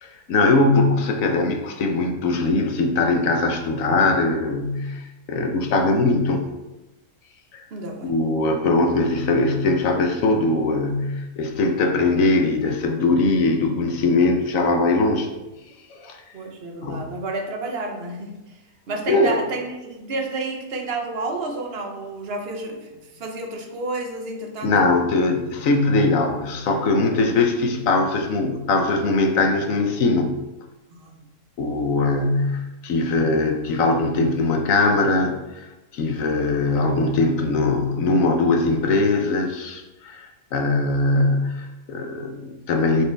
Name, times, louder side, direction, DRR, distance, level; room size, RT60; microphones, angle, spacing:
voice 1, 0.0-6.4 7.5-7.6 8.0-15.3 15.9-16.2 16.8-17.0 19.1-19.3 24.6-30.3 31.6-35.7 35.9-43.0, left 3 dB, 60° left, 4 dB, 1.1 m, -21 dB
voice 2, 7.7-8.1 16.3-18.4 18.9-22.9 23.1-24.8 30.9-31.2, right 2 dB, 45° right, 3 dB, 1.0 m, -30 dB
6.8 x 4.9 x 3.4 m, 1.0 s
omnidirectional pair, 1.7 m